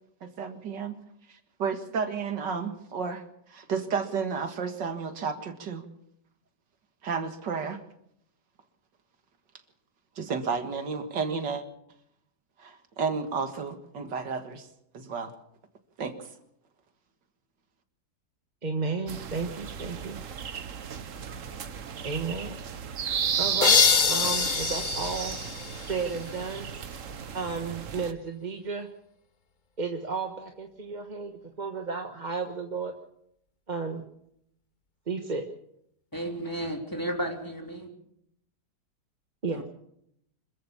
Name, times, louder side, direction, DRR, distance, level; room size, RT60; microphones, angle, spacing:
voice 1, 0.2-1.0 1.3-3.2 3.5-5.9 7.0-7.8 10.2-11.6 12.6-14.7 14.9-15.3 16.0-16.3, right 5 dB, 90° right, 8 dB, 2.4 m, -32 dB
voice 2, 18.6-20.2 22.0-22.6 23.4-25.4 25.9-26.7 27.3-28.9 29.8-32.9 33.7-34.0 35.1-35.4 39.4-39.6, right 4 dB, 30° right, 4 dB, 1.3 m, -33 dB
sound 1, 19.1-28.1, right 7 dB, 50° right, 1.3 m, -34 dB
sound 2, 23.6-26.3, left 6 dB, 40° left, 0.8 m, -25 dB
voice 3, 36.1-37.9 39.5-39.6, right 1 dB, 10° left, 2 dB, 3.3 m, -33 dB
26.0 x 14.5 x 7.0 m, 0.75 s
omnidirectional pair, 1.8 m